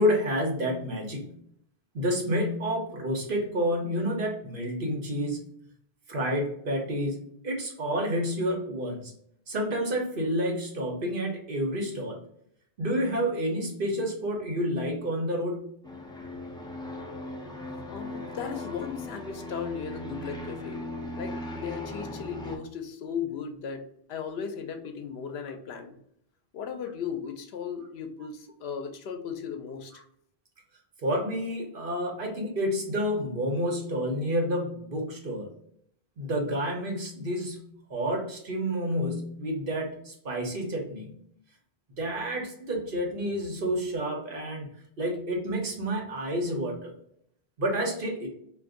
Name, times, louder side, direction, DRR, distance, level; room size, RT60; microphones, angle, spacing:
voice 1, 0.0-1.3 1.9-5.4 6.1-7.2 7.4-9.1 9.5-12.2 12.8-15.7 31.0-35.5 36.2-41.1 42.0-44.7 45.0-46.9 47.6-48.3, equal, 60° right, 0 dB, 1.1 m, -29 dB
sound 1, 15.8-22.6, left 1 dB, 5° left, 0.3 m, -38 dB
voice 2, 17.9-20.8 21.2-26.0 26.5-30.0, left 7 dB, 80° left, 6 dB, 0.8 m, -36 dB
2.5 x 2.5 x 3.6 m, 0.70 s
omnidirectional pair, 1.0 m